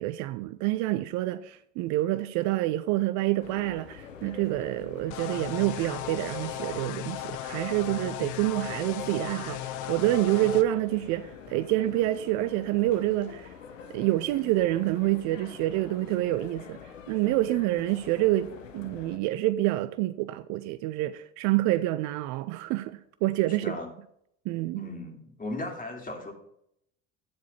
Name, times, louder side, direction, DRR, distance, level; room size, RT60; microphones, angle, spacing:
voice 1, 0.0-13.5 13.9-16.8 17.1-23.8 24.5-24.8, right 16 dB, 50° right, 0.5 m, -27 dB
sound 1, 3.4-19.2, left 7 dB, 80° left, 1.0 m, -46 dB
sound 2, 5.1-10.6, left 12 dB, 50° left, 0.8 m, -36 dB
voice 2, 23.5-23.9 24.8-26.3, left 2 dB, 20° left, 3.0 m, -37 dB
14.5 x 4.9 x 5.6 m
figure-of-eight pair, 65°, 38 cm